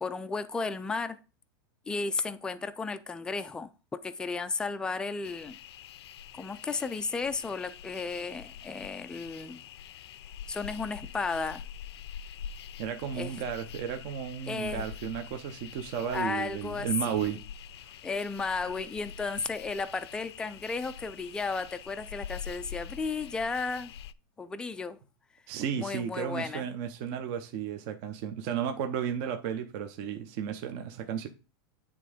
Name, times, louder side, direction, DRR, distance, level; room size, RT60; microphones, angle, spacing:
voice 1, 0.0-1.2 1.9-5.6 6.3-9.6 10.5-11.6 13.1-13.4 14.5-14.9 16.1-17.4 18.0-23.9 24.4-25.0 25.7-26.7, left 4 dB, 5° left, 0.3 m, -34 dB
sound 1, 5.2-24.1, left 8 dB, 80° left, 0.5 m, -45 dB
voice 2, 12.8-17.4 25.5-31.3, right 8 dB, 45° right, 0.8 m, -33 dB
9.2 x 3.6 x 5.0 m
supercardioid pair, 155°, 13 cm